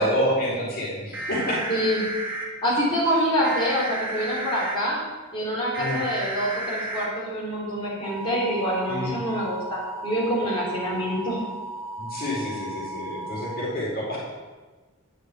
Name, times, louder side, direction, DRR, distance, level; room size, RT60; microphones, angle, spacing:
voice 1, 0.0-1.6 5.8-6.0 8.9-9.2 12.0-14.2, equal, 45° left, -5 dB, 4.4 m, -28 dB
sound 1, 1.1-2.5 3.4-4.8 5.7-7.1 8.0-13.6, right 2 dB, 10° right, 2.5 m, -34 dB
voice 2, 1.7-2.0 2.6-5.0 5.3-11.4, equal, 25° left, -7 dB, 4.3 m, -26 dB
10.5 x 8.0 x 8.5 m, 1.3 s
head